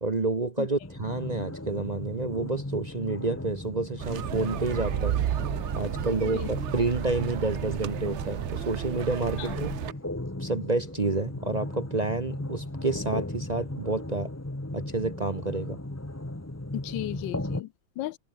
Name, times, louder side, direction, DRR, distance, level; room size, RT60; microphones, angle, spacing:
voice 1, 0.0-5.2 5.7-9.7 10.4-14.3 14.7-15.8, right 3 dB, 30° right, 0.9 m, -29 dB
sound 1, 0.8-17.6, left 1 dB, 10° left, 1.5 m, -37 dB
sound 2, 4.0-9.9, right 10 dB, 60° right, 0.7 m, -32 dB
voice 2, 16.7-18.2, left 16 dB, 85° left, 1.3 m, -35 dB
omnidirectional pair, 2.0 m